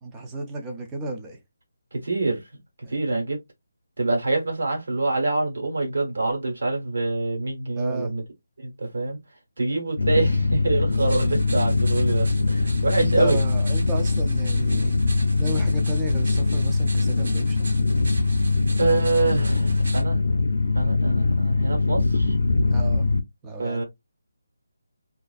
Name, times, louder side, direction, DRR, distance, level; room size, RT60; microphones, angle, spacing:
voice 1, 0.0-1.4 2.8-3.0 7.8-8.1 13.0-14.9 15.4-17.7 22.7-23.1 23.4-23.8, right 2 dB, 10° right, 0.4 m, -33 dB
voice 2, 1.9-2.4 2.9-3.4 4.0-8.2 8.6-9.2 9.6-13.4 18.8-20.2 20.7-22.3 23.6-23.8, right 3 dB, 70° right, 1.2 m, -25 dB
sound 1, 10.0-23.2, left 3 dB, 90° left, 0.5 m, -22 dB
sound 2, 10.9-20.0, right 2 dB, 50° right, 0.7 m, -41 dB
2.5 x 2.3 x 2.3 m
hypercardioid pair, 175°, 0 cm